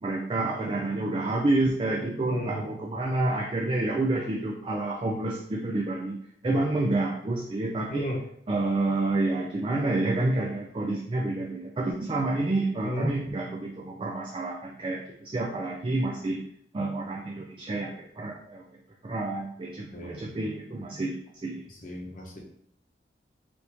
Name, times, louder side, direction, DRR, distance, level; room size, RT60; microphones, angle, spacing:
voice 1, 0.0-6.2 6.4-8.1 8.5-16.4 16.7-18.6 19.0-21.2 21.4-21.6, right 2 dB, 30° right, -1 dB, 0.3 m, -29 dB
voice 2, 2.3-2.6 7.9-8.2 12.8-13.1 19.9-20.2 21.8-22.4, equal, 45° left, -2 dB, 0.8 m, -33 dB
3.4 x 2.6 x 2.9 m, 0.68 s
head